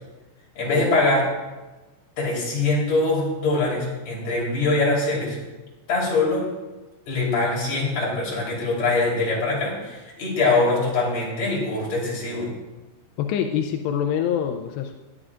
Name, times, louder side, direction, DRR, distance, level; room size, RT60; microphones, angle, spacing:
voice 1, 0.6-1.3 2.2-5.4 5.9-6.5 7.1-12.5, left 2 dB, 35° left, -4 dB, 4.6 m, -23 dB
voice 2, 13.2-14.9, left 9 dB, 85° left, 5 dB, 2.4 m, -25 dB
20.5 x 11.0 x 2.5 m, 1.2 s
omnidirectional pair, 5.5 m